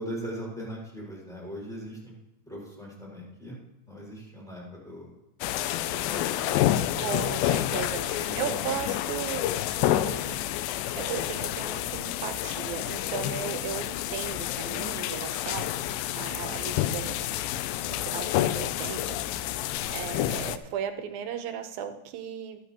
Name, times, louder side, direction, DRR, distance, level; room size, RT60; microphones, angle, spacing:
voice 1, 0.0-2.1 2.4-3.6 3.8-5.1 5.9-7.3 7.8-7.9 8.1-8.6, equal, ahead, -4 dB, 4.8 m, -40 dB
sound 1, 5.4-20.6, left 13 dB, 80° left, 2.2 m, -29 dB
voice 2, 7.0-10.4 10.9-15.7 16.1-17.3 18.1-19.2 19.9-22.6, right 8 dB, 75° right, 7 dB, 2.6 m, -36 dB
sound 2, 15.0-20.1, left 6 dB, 45° left, 4.3 m, -50 dB
22.0 x 8.0 x 2.9 m, 0.93 s
omnidirectional pair, 4.3 m